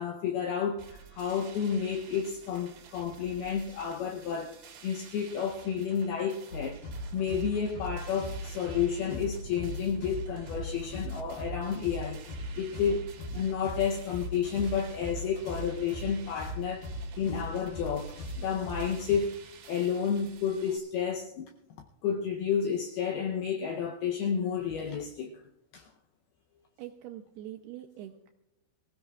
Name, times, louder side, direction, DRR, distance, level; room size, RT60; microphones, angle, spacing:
voice 1, 0.0-13.0 13.3-16.9 17.2-21.5 22.0-25.4 25.7-25.9, left 7 dB, 80° left, 2.2 m, -31 dB
sound 1, 0.8-20.8, right 7 dB, 60° right, 2.8 m, -52 dB
sound 2, 6.5-19.2, equal, 50° left, 4.5 m, -39 dB
voice 2, 26.8-28.3, right 12 dB, 85° right, 2.3 m, -44 dB
24.0 x 16.0 x 2.3 m
omnidirectional pair, 5.5 m